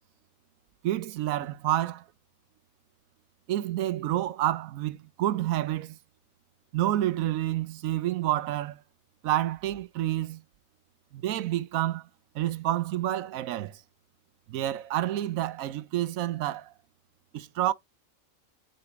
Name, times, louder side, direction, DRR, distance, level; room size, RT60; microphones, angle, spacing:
voice 1, 0.8-2.0 3.5-6.0 6.7-8.8 9.2-10.4 11.1-12.1 12.3-13.8 14.5-16.7 17.3-17.7, right 13 dB, 90° right, 1.0 m, -29 dB
6.7 x 4.2 x 4.6 m
omnidirectional pair, 1.4 m